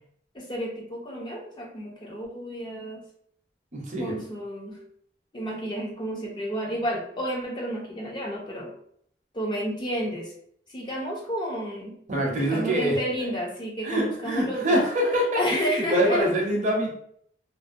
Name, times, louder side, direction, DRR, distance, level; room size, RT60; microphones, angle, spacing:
voice 1, 0.3-3.0 4.0-4.8 5.3-8.7 9.3-10.3 10.7-11.9 12.4-14.8 15.4-16.3, equal, 25° left, -2 dB, 0.5 m, -31 dB
voice 2, 3.7-4.2 12.1-13.3 13.8-16.9, right 1 dB, 40° right, -1 dB, 0.6 m, -25 dB
2.4 x 2.1 x 2.5 m, 0.66 s
head